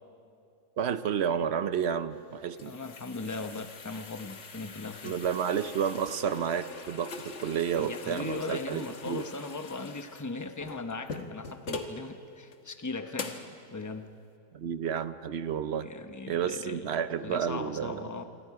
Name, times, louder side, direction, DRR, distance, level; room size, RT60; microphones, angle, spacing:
voice 1, 0.8-2.7 5.0-9.3 14.5-15.9 16.3-18.1, right 8 dB, 55° right, 12 dB, 0.8 m, -31 dB
sound 1, 2.2-12.0 12.5-12.6 13.2-13.5, left 4 dB, 50° left, 1.4 m, -43 dB
voice 2, 2.6-5.2 7.7-13.5 13.7-14.1 15.8-18.2, left 3 dB, 15° left, 7 dB, 0.6 m, -38 dB
27.5 x 24.5 x 4.8 m, 2.5 s
omnidirectional pair, 1.7 m